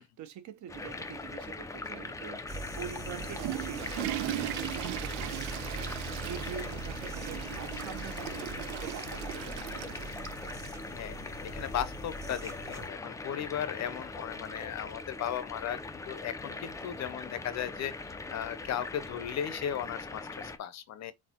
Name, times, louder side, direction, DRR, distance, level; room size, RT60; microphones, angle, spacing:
voice 1, 0.0-10.5, right 9 dB, 50° right, 0.9 m, -45 dB
sound 1, 0.7-20.6, left 3 dB, 10° left, 0.3 m, -41 dB
sound 2, 2.5-12.9, right 3 dB, 10° right, 0.7 m, -43 dB
Water / Toilet flush, 3.0-10.8, right 16 dB, 90° right, 0.6 m, -39 dB
voice 2, 10.9-15.8 16.1-21.1, left 10 dB, 45° left, 0.6 m, -36 dB
4.3 x 4.1 x 2.9 m
cardioid pair, 160°, 37 cm